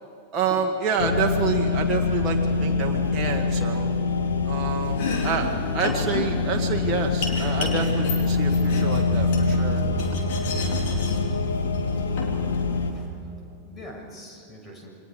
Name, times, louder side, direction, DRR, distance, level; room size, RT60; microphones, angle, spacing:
voice 1, 0.3-3.9 4.5-9.8, right 6 dB, 25° right, 0 dB, 1.8 m, -28 dB
sound 1, 1.0-12.9, left 3 dB, 70° left, 1.9 m, -24 dB
Domestic sounds home sounds, 4.8-13.0, left 4 dB, 50° left, 4.1 m, -34 dB
voice 2, 12.7-13.2 13.6-14.9, equal, 20° left, 1 dB, 6.7 m, -44 dB
28.5 x 23.5 x 5.0 m, 2.8 s
figure-of-eight pair, 90°, 0 cm